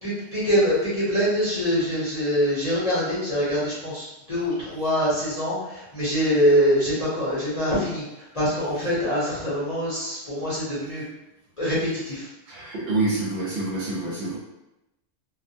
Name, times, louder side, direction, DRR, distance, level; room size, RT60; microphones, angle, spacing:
voice 1, 0.0-11.0 11.6-12.3, equal, 35° left, -10 dB, 0.8 m, -24 dB
voice 2, 12.5-14.4, right 2 dB, 60° right, -5 dB, 0.8 m, -27 dB
2.3 x 2.2 x 2.7 m, 0.92 s
omnidirectional pair, 1.3 m